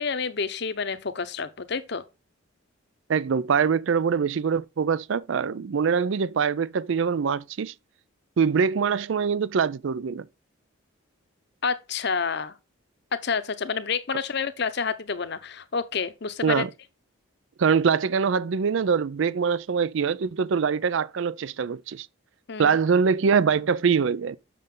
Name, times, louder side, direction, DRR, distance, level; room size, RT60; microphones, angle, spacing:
voice 1, 0.0-2.0 11.6-12.5 13.1-16.6 22.5-22.8, left 5 dB, 55° left, 0.8 m, -29 dB
voice 2, 3.1-7.7 8.4-10.3 16.4-16.7 17.6-22.1 22.6-24.4, right 6 dB, 60° right, 0.4 m, -23 dB
7.6 x 6.5 x 3.7 m
head